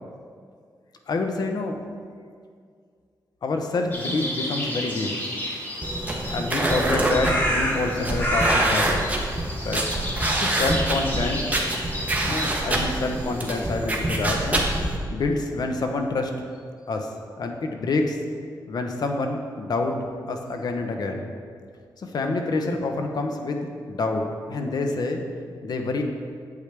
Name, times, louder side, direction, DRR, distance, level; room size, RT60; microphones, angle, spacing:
voice 1, 1.1-1.8 3.4-5.1 6.3-9.1 9.6-9.9 10.4-11.4 12.2-14.7 15.1-16.3 16.9-17.1 17.4-18.2 18.7-20.0 20.3-21.3 22.0-25.2 25.6-26.0, left 3 dB, 60° left, 4 dB, 0.9 m, -27 dB
sound 1, 3.9-13.7, equal, 25° left, 1.9 m, -30 dB
sound 2, 5.8-15.0, right 1 dB, 20° right, 1.2 m, -26 dB
8.3 x 8.2 x 3.4 m, 2.1 s
wide cardioid pair, 105°, 8 cm